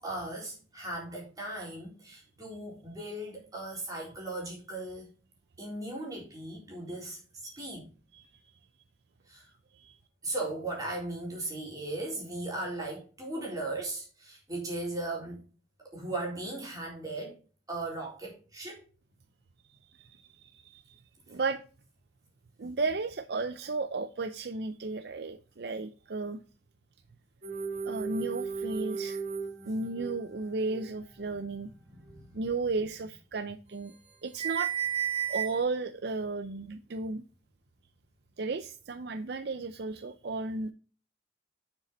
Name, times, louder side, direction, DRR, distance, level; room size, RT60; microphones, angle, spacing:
voice 1, 0.0-5.1 5.6-7.9 9.3-9.5 10.2-15.4 15.9-17.4 17.7-18.8 31.6-32.3, right 2 dB, 20° right, 3.8 m, -37 dB
voice 2, 20.0-21.0 21.3-21.6 22.6-26.4 27.9-29.2 29.7-31.7 32.3-33.9 34.2-34.7 35.3-37.2 38.4-40.7, right 3 dB, 60° right, 0.5 m, -34 dB
sound 1, 27.4-30.2 30.5-30.8 31.3-31.5 32.0-32.1 33.9-34.1 34.4-35.6, right 7 dB, 35° right, 2.2 m, -34 dB
7.0 x 6.8 x 4.2 m
head